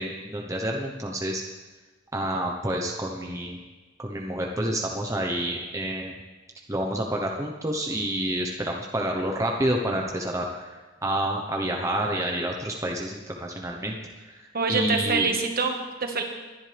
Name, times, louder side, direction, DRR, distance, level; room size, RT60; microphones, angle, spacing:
voice 1, 0.0-1.4 2.1-3.6 4.0-6.1 6.7-14.0 14.2-15.3, right 1 dB, 15° right, 0 dB, 0.9 m, -29 dB
voice 2, 14.5-16.2, right 4 dB, 45° right, 4 dB, 1.5 m, -25 dB
21.5 x 11.0 x 3.4 m, 1.3 s
head